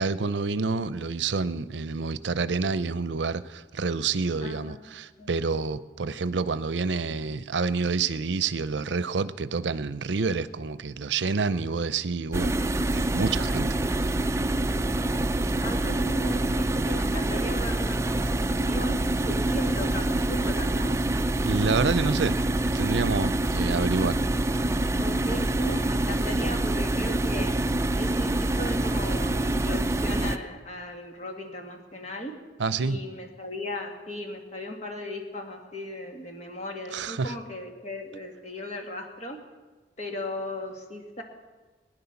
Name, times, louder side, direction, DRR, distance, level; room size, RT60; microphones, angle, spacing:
voice 1, 0.0-12.5 12.9-13.7 21.4-22.4 22.7-24.2 32.6-33.0 36.9-37.4, right 4 dB, 85° right, 15 dB, 0.6 m, -28 dB
voice 2, 4.4-4.8 5.2-5.4 15.6-21.0 25.0-27.5 28.0-32.3 32.8-39.4 40.0-41.2, left 1 dB, 40° left, 3 dB, 2.2 m, -36 dB
sound 1, 12.3-30.4, right 1 dB, 15° right, 0.5 m, -26 dB
19.5 x 10.0 x 7.0 m, 1.3 s
head